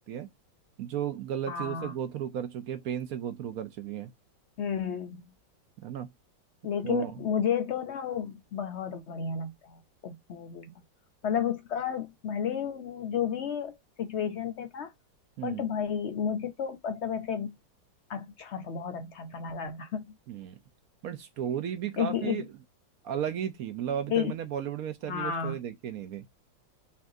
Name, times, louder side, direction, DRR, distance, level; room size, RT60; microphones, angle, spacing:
voice 1, 0.8-4.1 5.8-6.1 6.8-7.1 10.7-10.8 15.4-15.6 20.3-20.6 21.0-22.5 23.0-26.2, right 9 dB, 70° right, 0.8 m, -34 dB
voice 2, 1.5-1.9 4.6-5.2 6.6-10.7 11.2-14.9 15.4-17.5 18.1-20.1 22.0-22.4 24.1-24.3 25.1-25.6, left 7 dB, 90° left, 0.6 m, -32 dB
5.6 x 2.5 x 2.6 m
omnidirectional pair, 2.1 m